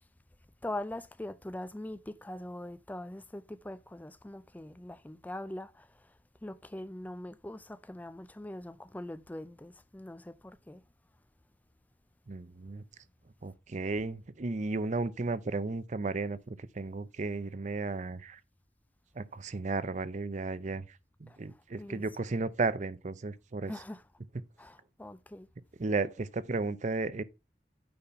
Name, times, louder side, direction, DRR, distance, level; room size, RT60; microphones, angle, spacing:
voice 1, 0.6-5.9 6.4-10.8 21.8-22.0 23.7-24.0 24.6-25.5, left 1 dB, 10° left, 0.4 m, -42 dB
voice 2, 12.3-12.8 13.4-18.4 19.2-20.9 21.2-23.7 25.8-27.2, right 3 dB, 45° right, 0.6 m, -34 dB
8.6 x 4.1 x 5.7 m
head